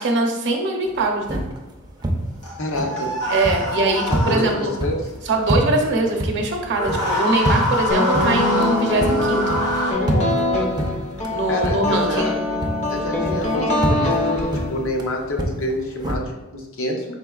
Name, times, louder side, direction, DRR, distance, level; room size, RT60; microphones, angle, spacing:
voice 1, 0.0-1.4 3.3-4.7 5.3-9.6 11.3-12.3, right 2 dB, 55° right, 2 dB, 0.7 m, -22 dB
sound 1, 0.9-12.3 12.6-16.2, right 1 dB, 20° right, 0.5 m, -28 dB
sound 2, 2.4-4.8 6.7-9.9, left 1 dB, 90° left, 1.1 m, -25 dB
voice 2, 2.6-3.2 4.1-5.1 11.5-12.4 12.9-17.1, left 1 dB, 65° left, 1 dB, 0.7 m, -27 dB
sound 3, 7.9-15.0, left 2 dB, 35° left, 0.6 m, -23 dB
4.8 x 3.6 x 2.3 m, 1.1 s
head